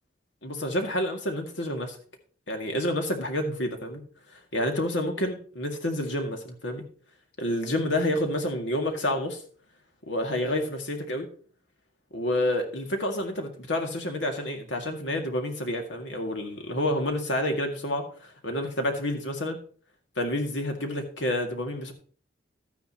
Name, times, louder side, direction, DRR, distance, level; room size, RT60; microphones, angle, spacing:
voice 1, 0.4-2.0 2.5-4.0 4.5-6.8 7.4-9.4 10.1-11.3 12.1-19.6 20.2-21.9, left 1 dB, 85° left, 3 dB, 2.1 m, -29 dB
13.0 x 9.4 x 2.9 m, 0.43 s
head